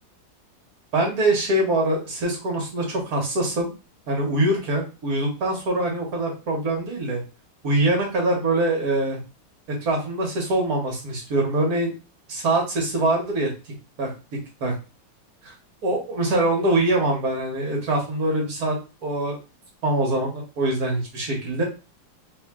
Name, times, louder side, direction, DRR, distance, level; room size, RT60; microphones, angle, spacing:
voice 1, 0.9-3.7 4.1-7.2 7.6-9.2 9.7-11.9 12.3-13.5 14.0-14.7 15.4-15.5 15.8-18.8 19.0-19.4 19.8-21.6, right 2 dB, 55° right, 0 dB, 1.7 m, -23 dB
4.1 x 2.7 x 3.6 m, 0.30 s
omnidirectional pair, 2.0 m